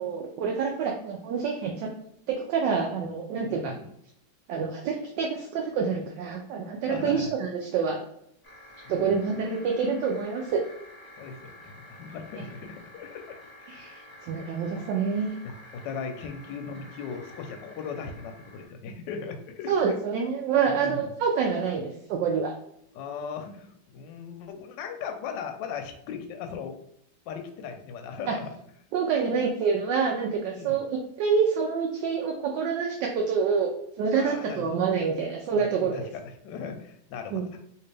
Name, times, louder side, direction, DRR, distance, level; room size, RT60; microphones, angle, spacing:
voice 1, 0.0-1.9 2.3-3.7 4.5-8.0 8.9-10.6 13.7-15.3 19.7-22.5 28.9-30.9 31.2-33.7 34.0-36.1 37.3-37.4, right 6 dB, 75° right, 1 dB, 1.1 m, -27 dB
voice 2, 3.4-3.9 6.9-7.3 8.8-9.2 11.2-13.9 14.7-15.0 15.4-20.0 20.6-21.1 22.9-26.8 27.3-28.6 30.5-30.8 34.1-34.8 35.4-37.6, left 6 dB, 75° left, 5 dB, 1.2 m, -38 dB
sound 1, 8.4-18.7, left 1 dB, 15° left, 0.7 m, -49 dB
3.3 x 2.8 x 3.3 m, 0.72 s
omnidirectional pair, 2.1 m